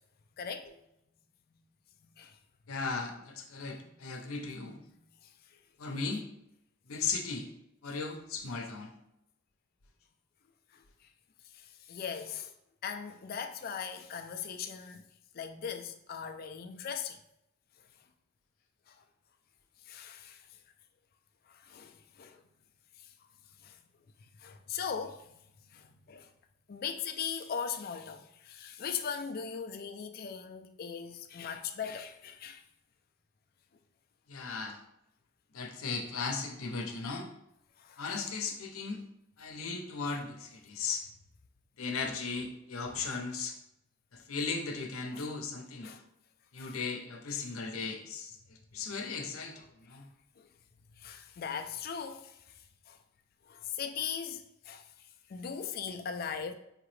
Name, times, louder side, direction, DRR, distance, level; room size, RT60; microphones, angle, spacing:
voice 1, 0.4-0.7 2.2-2.4 3.8-3.9 5.2-5.3 7.9-8.0 10.7-10.8 11.5-12.5 12.8-15.0 15.3-17.2 18.9-19.0 19.9-20.5 21.5-22.4 23.6-23.8 24.4-25.3 25.7-26.3 26.7-32.6 37.8-38.0 45.1-45.3 45.8-46.0 46.6-46.8 47.4-47.5 49.8-50.0 50.4-50.5 51.0-52.4 52.9-53.0 53.5-54.9 55.3-56.5, left 7 dB, 45° left, 0.4 m, -39 dB
voice 2, 2.7-4.8 5.8-6.3 6.9-7.5 7.8-8.9 34.3-34.8 35.5-37.3 38.0-39.0 39.4-41.0 41.8-43.5 44.1-45.9 46.5-48.3 48.7-49.6 49.9-50.1, left 4 dB, 90° left, 0.7 m, -36 dB
4.6 x 2.9 x 3.2 m
head